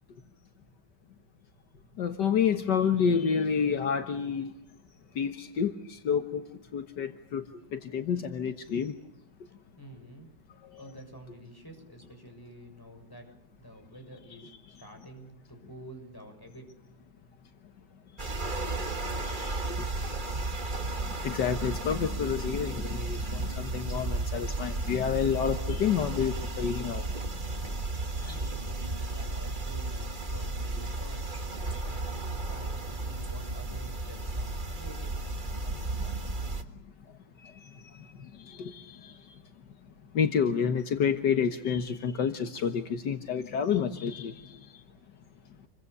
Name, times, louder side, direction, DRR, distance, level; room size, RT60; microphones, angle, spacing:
voice 1, 2.0-4.5 5.2-6.4 6.7-7.4 7.7-9.0 10.6-10.9 19.2-19.9 20.8-27.8 28.1-28.5 35.6-36.2 36.5-36.6 37.4-39.4 40.1-44.8, left 7 dB, 70° left, 1.9 m, -30 dB
voice 2, 9.8-10.3 10.8-13.3 13.6-16.7 28.2-35.2, right 1 dB, 10° left, 6.9 m, -49 dB
sound 1, 18.2-36.6, right 2 dB, 30° right, 1.8 m, -34 dB
28.5 x 24.0 x 6.8 m
omnidirectional pair, 1.9 m